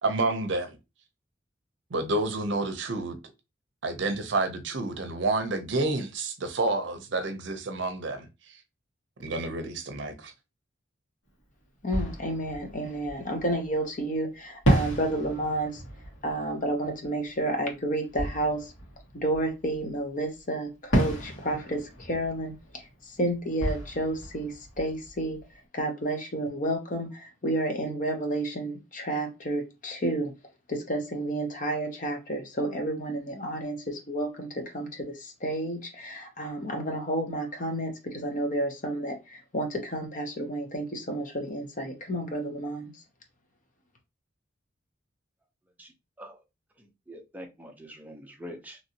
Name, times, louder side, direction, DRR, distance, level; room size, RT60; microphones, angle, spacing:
voice 1, 0.0-0.8 1.9-3.2 3.8-8.3 9.2-10.3, right 2 dB, 65° right, 0.6 m, -29 dB
Fireworks, 11.3-11.4 11.9-13.8 14.6-20.0 20.9-25.7, right 1 dB, 80° left, 1.6 m, -32 dB
voice 2, 11.8-15.8 16.2-18.7 19.1-25.4 25.7-30.3 30.7-42.9, right 1 dB, 40° left, 0.7 m, -31 dB
voice 3, 46.8-48.8, equal, 10° right, 0.5 m, -44 dB
3.0 x 2.7 x 2.7 m
head